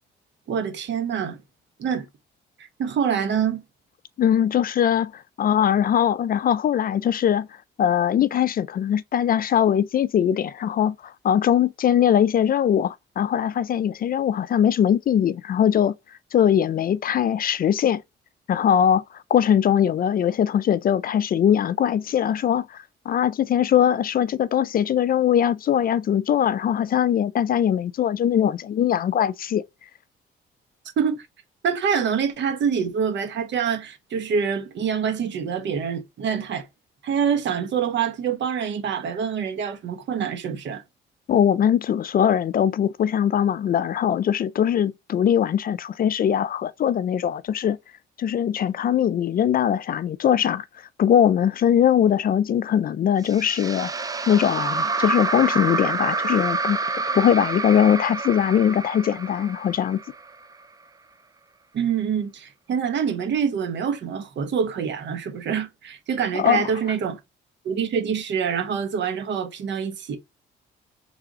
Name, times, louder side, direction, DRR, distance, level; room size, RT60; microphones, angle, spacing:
voice 1, 0.5-1.4 1.8-2.1 2.6-3.6 31.0-31.3 31.6-36.7 37.0-40.8 61.7-67.2 67.6-70.2, right 7 dB, 65° right, 1.0 m, -25 dB
voice 2, 4.2-7.5 7.8-15.9 16.3-18.0 18.5-19.0 19.3-22.8 23.1-29.6 41.3-47.8 48.2-50.6 51.0-53.9 54.3-56.8 57.1-60.0 66.4-66.6, left 9 dB, 45° left, 0.4 m, -21 dB
sound 1, 53.2-60.5, right 3 dB, 20° right, 0.4 m, -28 dB
3.6 x 3.4 x 2.9 m
cardioid pair, 90°, 20 cm